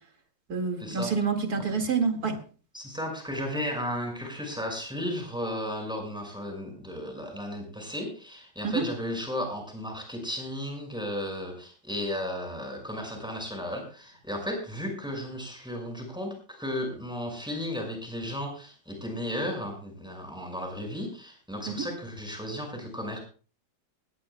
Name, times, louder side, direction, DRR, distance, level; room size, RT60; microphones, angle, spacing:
voice 1, 0.5-2.4 8.6-8.8 21.7-21.9, right 5 dB, 50° right, 5 dB, 2.6 m, -27 dB
voice 2, 2.7-23.2, left 1 dB, ahead, 2 dB, 5.6 m, -34 dB
20.0 x 16.5 x 2.3 m, 0.38 s
omnidirectional pair, 2.1 m